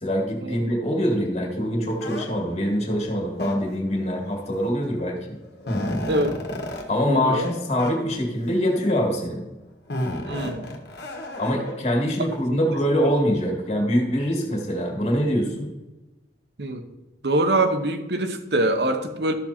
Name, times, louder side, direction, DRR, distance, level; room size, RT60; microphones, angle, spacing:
voice 1, 0.0-5.4 6.9-9.4 11.4-15.7, equal, 40° left, 1 dB, 2.1 m, -24 dB
sound 1, 2.0-2.2 3.3-3.9 4.9-5.0 5.3-6.8 7.4-7.5 7.8-7.9 8.6-9.1 9.9-11.7, left 1 dB, 70° left, 1.7 m, -31 dB
voice 2, 6.1-6.4 7.1-7.5 10.3-10.7 12.0-12.1 16.6-16.8 17.2-19.3, right 1 dB, 70° right, 8 dB, 1.0 m, -24 dB
12.5 x 6.1 x 4.4 m, 1.1 s
head